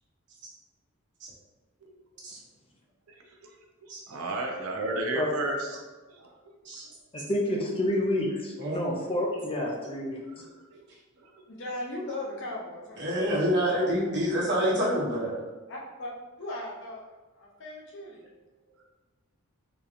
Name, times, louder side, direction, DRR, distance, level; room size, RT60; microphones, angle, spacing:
voice 1, 4.1-5.7 6.2-6.3 10.4-10.8 11.2-11.3, right 2 dB, 90° right, 1 dB, 0.6 m, -32 dB
voice 2, 7.1-10.2, left 1 dB, 25° left, 0 dB, 0.5 m, -29 dB
voice 3, 8.6-9.0 13.0-15.3, equal, 55° right, -6 dB, 1.1 m, -27 dB
voice 4, 11.5-13.0 15.7-16.1 16.4-17.0 17.4-18.2, left 1 dB, 60° left, -4 dB, 0.8 m, -37 dB
3.8 x 2.8 x 2.5 m, 1.2 s
head